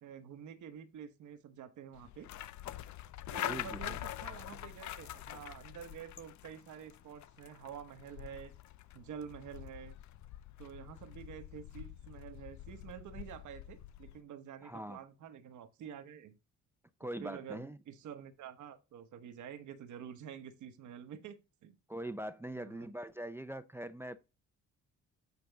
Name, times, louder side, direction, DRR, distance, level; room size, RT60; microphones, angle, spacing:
voice 1, 0.0-2.3 3.3-8.5 8.9-9.9 10.6-16.4 17.2-21.8 22.5-22.9, right 8 dB, 75° right, 1.1 m, -48 dB
sound 1, 1.9-14.2, left 13 dB, 70° left, 0.6 m, -45 dB
voice 2, 3.4-4.0 14.6-15.0 17.0-17.8 21.9-24.2, right 1 dB, 10° right, 0.5 m, -42 dB
8.5 x 5.1 x 3.4 m
cardioid pair, 90°, 30 cm